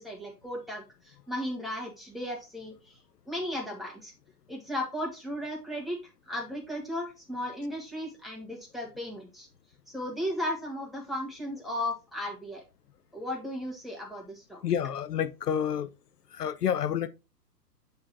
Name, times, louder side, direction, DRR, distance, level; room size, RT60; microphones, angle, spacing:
voice 1, 0.0-3.0 3.3-4.1 4.5-6.0 6.3-9.5 9.9-12.6 13.1-14.6, left 1 dB, ahead, 1.5 m, -35 dB
voice 2, 14.6-15.9 16.3-17.1, left 9 dB, 70° left, 0.8 m, -29 dB
7.8 x 3.9 x 4.3 m
figure-of-eight pair, 125°, 49 cm